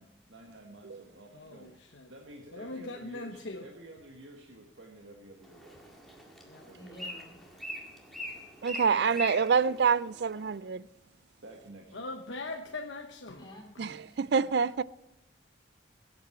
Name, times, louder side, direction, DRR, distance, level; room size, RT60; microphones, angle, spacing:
voice 1, 0.0-1.7 2.1-5.9 6.6-7.0 11.4-12.0, right 1 dB, 80° right, 1.6 m, -51 dB
voice 2, 1.3-2.1 2.5-3.7 6.4-6.7 11.9-13.5, left 2 dB, 75° left, 1.0 m, -41 dB
Bird, 5.4-10.6, equal, ahead, 1.9 m, -43 dB
voice 3, 6.8-7.4 8.8-9.0 13.4-14.5, equal, 25° left, 3.2 m, -50 dB
voice 4, 8.6-10.8 13.8-14.8, right 6 dB, 60° right, 0.4 m, -27 dB
21.5 x 8.7 x 4.4 m
head